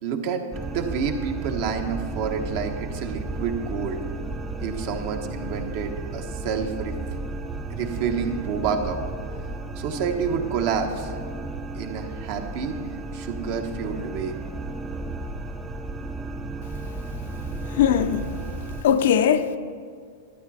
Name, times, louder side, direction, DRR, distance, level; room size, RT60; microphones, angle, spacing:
voice 1, 0.0-4.0 4.6-6.9 7.7-9.0 9.8-11.1 11.7-12.8 13.1-14.3, right 6 dB, 50° right, 1.2 m, -28 dB
sound 1, 0.5-18.8, right 2 dB, 10° right, 0.5 m, -33 dB
voice 2, 17.7-18.3 18.8-19.6, left 8 dB, 70° left, 0.6 m, -20 dB
12.0 x 10.0 x 4.2 m
supercardioid pair, 145°, 0 cm